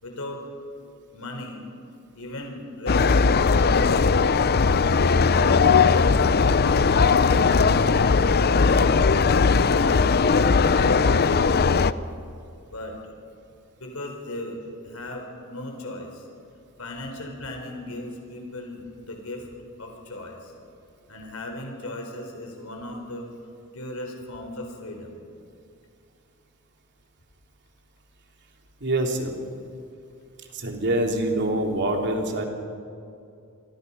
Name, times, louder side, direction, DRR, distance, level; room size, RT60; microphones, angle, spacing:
voice 1, 0.0-0.4 1.1-1.7 2.1-4.4 6.4-6.9 7.2-9.1 9.7-11.8 12.7-13.1 13.8-16.3 16.8-19.5 19.8-20.5 21.1-23.3 23.7-25.2, left 1 dB, 85° left, 2 dB, 4.2 m, -37 dB
sound 1, 2.9-11.9, left 5 dB, 50° left, 0.6 m, -19 dB
voice 2, 28.8-29.3 30.5-32.5, right 1 dB, 55° right, 1 dB, 3.4 m, -25 dB
28.5 x 24.0 x 5.6 m, 2.5 s
head